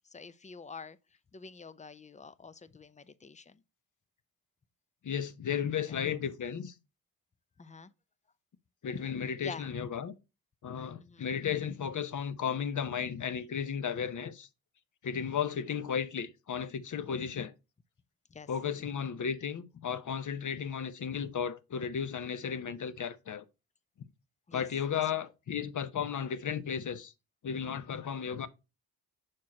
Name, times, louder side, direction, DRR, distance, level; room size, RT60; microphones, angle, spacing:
voice 1, 0.0-1.0 1.3-3.6 5.8-6.0 7.6-7.9 9.4-9.6 11.0-11.4 15.1-15.3 18.3-18.5 24.5-24.6 24.9-25.0, left 4 dB, 20° left, 0.5 m, -47 dB
voice 2, 5.0-6.7 8.8-10.1 10.6-14.5 15.0-17.5 18.5-23.4 24.5-27.1 27.4-28.5, left 7 dB, 50° left, 0.8 m, -34 dB
6.2 x 4.4 x 4.1 m
cardioid pair, 60°, 39 cm